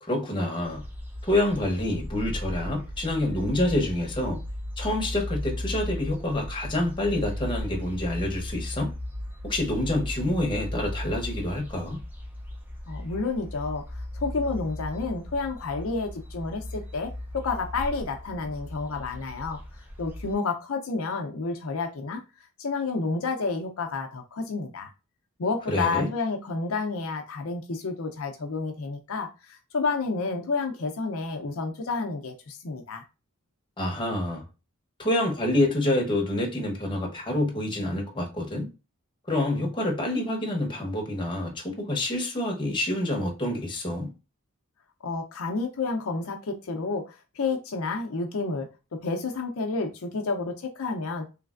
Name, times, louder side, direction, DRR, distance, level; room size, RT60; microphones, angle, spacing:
voice 1, 0.0-0.8 1.2-4.4 4.8-8.9 9.4-12.0 25.7-26.1 33.8-34.4 35.0-38.7 39.3-44.1, left 1 dB, 20° left, 0.9 m, -27 dB
sound 1, 0.6-20.3, left 1 dB, 10° right, 0.5 m, -36 dB
voice 2, 12.9-13.8 14.1-19.6 20.0-22.2 22.6-24.9 25.4-33.0 45.0-48.7 48.9-51.3, left 4 dB, 70° left, 0.5 m, -30 dB
3.2 x 3.1 x 2.4 m
head